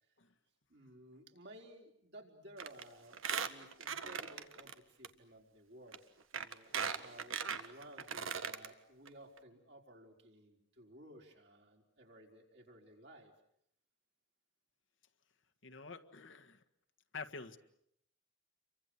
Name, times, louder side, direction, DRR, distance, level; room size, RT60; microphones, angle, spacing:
voice 1, 0.7-6.0 6.3-13.3, right 1 dB, 60° right, 1 dB, 4.8 m, -57 dB
Squeak, 2.6-2.8 3.1-4.7 5.0-5.1 5.9-6.0 6.3-8.7 9.1-9.2 9.4-9.5, right 7 dB, 90° right, 1.6 m, -39 dB
voice 2, 15.6-16.6 17.1-17.6, left 4 dB, 70° left, 6 dB, 1.6 m, -48 dB
29.5 x 24.0 x 8.2 m, 0.74 s
head